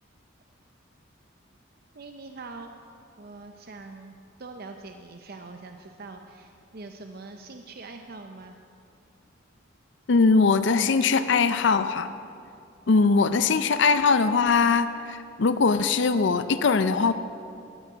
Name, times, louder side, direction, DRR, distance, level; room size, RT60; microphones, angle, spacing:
voice 1, 1.9-2.8 3.2-8.6, right 3 dB, 50° right, 5 dB, 0.6 m, -43 dB
voice 2, 10.1-12.1 12.9-17.1, left 4 dB, 65° left, 11 dB, 0.5 m, -21 dB
13.0 x 9.7 x 7.8 m, 2.5 s
head